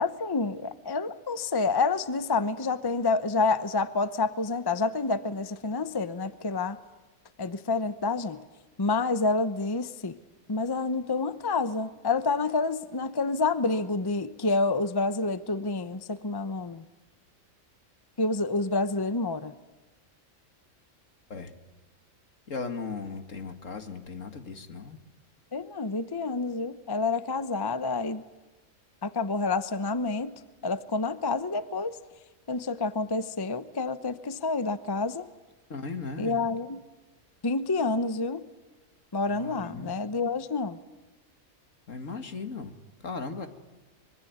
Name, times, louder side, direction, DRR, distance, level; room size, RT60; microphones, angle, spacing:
voice 1, 0.0-6.8 7.4-8.4 8.8-10.2 10.5-16.8 18.2-19.5 25.5-28.2 29.0-32.0 32.5-35.3 36.2-36.8 37.4-38.5 39.1-40.8, left 3 dB, 20° left, 0.8 m, -28 dB
voice 2, 22.5-25.0 35.7-36.3 39.3-39.9 41.9-42.8 43.0-43.5, left 4 dB, 70° left, 2.4 m, -37 dB
25.5 x 23.5 x 9.4 m
omnidirectional pair, 1.4 m